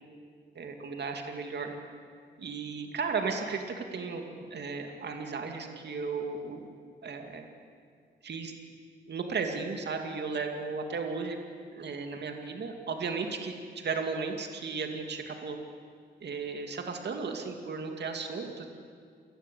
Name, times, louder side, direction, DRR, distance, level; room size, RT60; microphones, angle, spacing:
voice 1, 0.6-1.7 2.4-4.2 4.5-6.7 7.0-7.4 8.2-8.5 9.1-11.4 11.7-15.6 16.2-18.7, right 4 dB, 70° right, 4 dB, 2.5 m, -35 dB
28.5 x 19.0 x 8.6 m, 2.1 s
wide cardioid pair, 125°, 18 cm